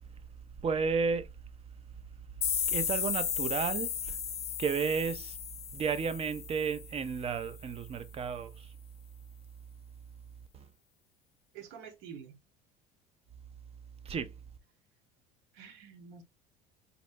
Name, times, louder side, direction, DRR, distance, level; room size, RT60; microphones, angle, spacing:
voice 1, 0.6-1.3 2.7-4.2 4.6-5.4 5.7-8.7 10.5-10.6 14.1-14.3, right 6 dB, 30° right, 0.5 m, -32 dB
sound 1, 2.4-7.1, left 8 dB, 35° left, 0.6 m, -34 dB
voice 2, 11.5-12.4 15.5-16.2, right 7 dB, 70° right, 0.9 m, -48 dB
4.0 x 2.1 x 2.6 m
supercardioid pair, 95°, 19 cm